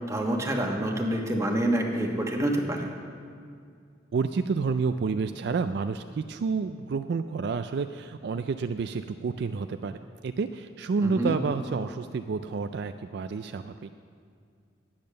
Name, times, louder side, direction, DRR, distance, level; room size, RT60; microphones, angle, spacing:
voice 1, 0.1-2.9 11.0-11.4, right 1 dB, 15° right, 1 dB, 1.2 m, -27 dB
voice 2, 4.1-10.0 10.2-13.9, right 4 dB, 60° right, 9 dB, 0.3 m, -29 dB
10.0 x 8.9 x 6.5 m, 2.2 s
head